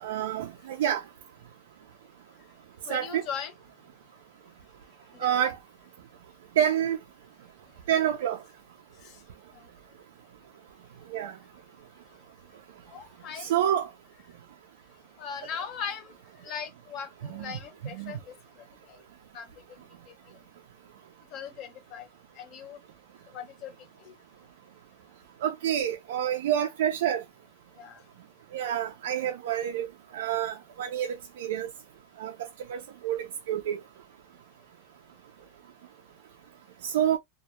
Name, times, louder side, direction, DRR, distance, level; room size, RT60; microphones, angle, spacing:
voice 1, 0.0-1.0 2.9-3.2 5.2-5.6 6.6-7.0 7.9-8.4 11.1-11.3 13.4-13.9 17.3-17.5 18.0-18.1 25.4-27.2 28.5-29.9 30.1-31.7 32.2-32.3 32.7-33.8 36.8-37.2, right 10 dB, 85° right, 0.3 m, -28 dB
voice 2, 2.9-3.5 5.2-5.5 12.9-13.5 15.2-16.1 16.4-18.3 19.3-19.5 21.3-22.0 22.4-22.8 23.3-23.7 27.8-28.0, left 7 dB, 40° left, 0.6 m, -38 dB
2.1 x 2.0 x 2.9 m
supercardioid pair, 160°, 0 cm